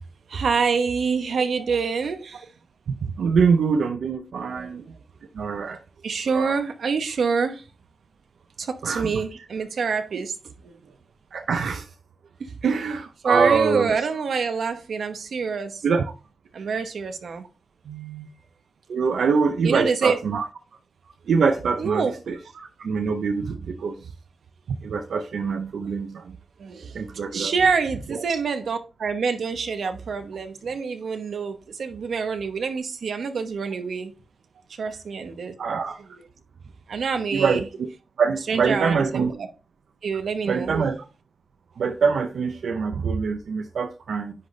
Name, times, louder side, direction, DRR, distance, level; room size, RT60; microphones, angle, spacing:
voice 1, 0.3-2.4 4.5-4.7 6.0-7.6 8.6-10.9 12.4-12.5 13.2-15.8 16.5-17.4 17.8-18.3 19.0-19.2 19.6-20.2 21.8-22.1 26.6-27.0 27.3-34.1 34.8-35.5 36.0-36.2 36.9-37.7 38.5-39.5 40.0-40.8, right 5 dB, 65° right, 1.0 m, -26 dB
voice 2, 3.2-4.8 5.4-5.8 6.3-6.6 8.8-9.2 11.3-11.9 12.6-13.9 15.8-16.0 18.9-20.4 21.3-23.9 24.7-26.4 26.9-27.5 35.6-36.0 37.3-37.9 38.2-39.3 40.5-41.0 41.8-44.3, right 5 dB, 85° right, 0.5 m, -24 dB
10.0 x 4.0 x 3.2 m
wide cardioid pair, 170°, 0 cm